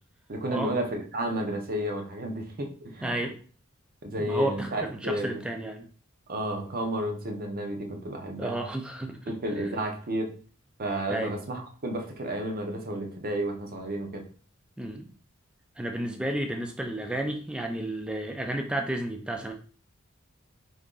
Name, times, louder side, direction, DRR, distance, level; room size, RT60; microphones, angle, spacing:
voice 1, 0.3-3.2 4.0-5.4 6.3-8.6 9.3-10.3 10.8-14.3, right 1 dB, 45° right, 3 dB, 0.6 m, -31 dB
voice 2, 3.0-3.4 4.2-5.9 8.4-9.3 11.1-11.3 14.8-15.1 15.8-19.5, right 1 dB, 5° right, 3 dB, 0.3 m, -32 dB
2.8 x 2.5 x 3.7 m, 0.42 s
head